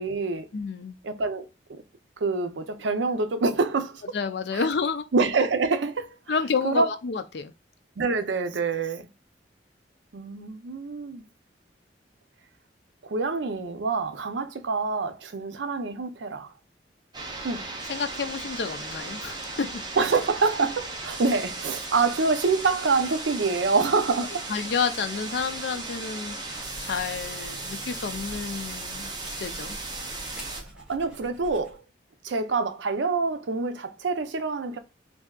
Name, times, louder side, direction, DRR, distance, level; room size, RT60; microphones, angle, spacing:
voice 1, 0.0-0.5 1.0-1.5 2.2-4.0 4.5-4.6 5.1-6.1 6.6-6.9 8.0-9.1 10.1-11.2 13.0-16.5 17.4-17.7 20.0-24.5 30.5-31.8 32.2-34.8, right 4 dB, 80° right, 0.5 m, -26 dB
voice 2, 0.5-1.0 4.1-5.0 6.3-7.5 17.9-19.8 24.5-29.8, left 5 dB, 65° left, 0.4 m, -30 dB
sound 1, 17.1-30.6, right 3 dB, 25° right, 0.7 m, -36 dB
sound 2, 26.4-31.8, equal, 5° right, 0.9 m, -45 dB
3.4 x 2.6 x 2.3 m
head